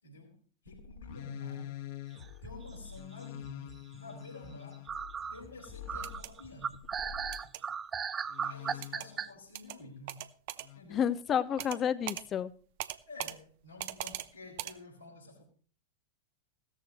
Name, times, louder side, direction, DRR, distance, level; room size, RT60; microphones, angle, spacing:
voice 1, 0.0-0.4 0.6-1.8 2.4-4.9 5.3-6.9 8.4-10.3 10.7-11.1 13.1-15.4, left 2 dB, 85° left, 5.0 m, -50 dB
sound 1, 0.7-7.5 8.3-9.3 10.6-10.8, left 11 dB, 55° left, 2.0 m, -46 dB
sound 2, 2.2-3.0 3.4-4.0 4.4-4.5 4.9-9.3, right 7 dB, 20° right, 0.5 m, -37 dB
sound 3, 5.9-6.3 7.3-7.6 8.8-9.1 9.5-9.8 10.1-10.7 11.6-11.8 12.1-12.2 12.8-13.4 13.8-14.3 14.6-14.7, right 15 dB, 50° right, 0.7 m, -39 dB
voice 2, 10.9-12.5, left 8 dB, 25° left, 0.8 m, -30 dB
16.5 x 14.0 x 3.1 m
figure-of-eight pair, 90°, 0 cm